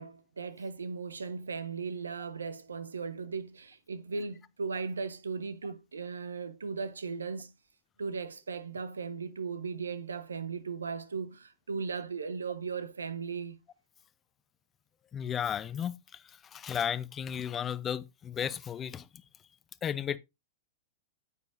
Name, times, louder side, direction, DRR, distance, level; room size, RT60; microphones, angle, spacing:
voice 1, 0.0-7.5 8.0-13.6, right 5 dB, 75° right, 0.8 m, -37 dB
voice 2, 15.1-19.1 19.8-20.2, left 8 dB, 25° left, 0.6 m, -34 dB
9.6 x 8.4 x 2.6 m
figure-of-eight pair, 95°, 0 cm